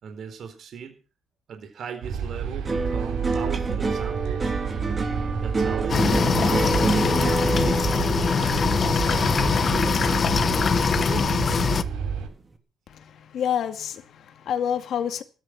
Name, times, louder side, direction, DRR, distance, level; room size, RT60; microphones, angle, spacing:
voice 1, 0.0-1.0 1.5-4.5 5.4-7.0 7.4-7.9 8.2-8.7 9.3-11.7, right 7 dB, 45° right, 4.2 m, -38 dB
sound 1, 2.0-12.3, right 7 dB, 80° right, 7.5 m, -30 dB
sound 2, 2.7-11.1 11.4-12.1, right 3 dB, 20° right, 2.8 m, -28 dB
sound 3, 5.9-11.8, left 6 dB, 30° left, 1.2 m, -22 dB
voice 2, 12.9-15.2, left 9 dB, 50° left, 2.3 m, -28 dB
20.0 x 11.5 x 6.0 m
cardioid pair, 165°, 0 cm